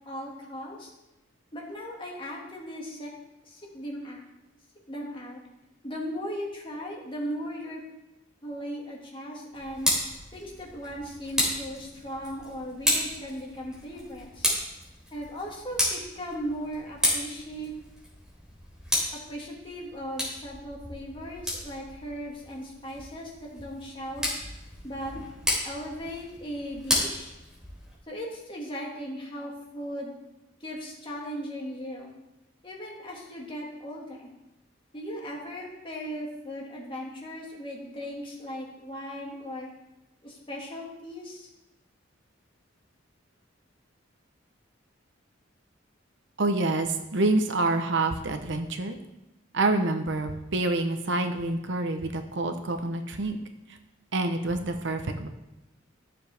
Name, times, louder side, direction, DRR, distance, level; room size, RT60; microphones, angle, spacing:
voice 1, 0.1-0.9 1.5-3.1 3.5-4.2 4.9-5.4 5.8-7.8 8.4-9.9 10.3-14.5 15.1-17.7 19.3-24.3 24.8-25.1 25.6-27.3 28.1-30.1 30.6-32.1 32.6-34.3 34.9-39.7 40.2-41.5, equal, 25° left, -2 dB, 2.1 m, -37 dB
Tick, 9.5-28.0, left 1 dB, 5° right, 3.5 m, -33 dB
voice 2, 46.4-49.0 49.5-53.4 54.1-55.3, right 2 dB, 70° right, 7 dB, 0.9 m, -27 dB
13.5 x 7.1 x 3.5 m, 0.95 s
head